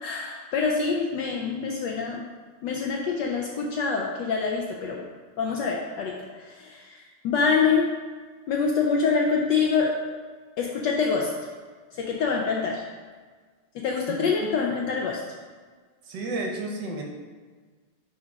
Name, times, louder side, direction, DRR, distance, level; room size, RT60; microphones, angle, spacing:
voice 1, 0.0-2.2 2.6-5.1 5.4-7.9 8.5-9.9 10.6-11.3 11.9-12.8 13.7-15.2, left 5 dB, 75° left, 0 dB, 1.0 m, -25 dB
voice 2, 14.1-14.6 16.1-17.0, right 2 dB, 65° right, 2 dB, 1.2 m, -32 dB
6.1 x 3.7 x 5.1 m, 1.5 s
omnidirectional pair, 2.4 m